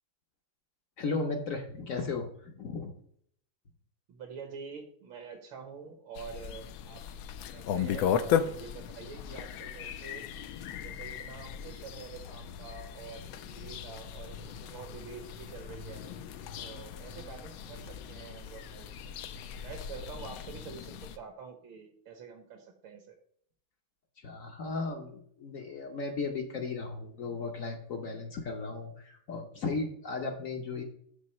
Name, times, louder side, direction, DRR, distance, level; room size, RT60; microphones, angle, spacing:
voice 1, 1.0-2.9 24.2-30.8, left 3 dB, 55° left, 3 dB, 0.9 m, -35 dB
voice 2, 4.1-7.1 7.5-10.2 10.8-16.1 16.6-19.2 19.6-23.2, right 6 dB, 70° right, 4 dB, 1.8 m, -46 dB
sound 1, 6.1-21.2, left 8 dB, 80° left, 1.4 m, -37 dB
7.5 x 3.9 x 6.2 m, 0.63 s
omnidirectional pair, 2.3 m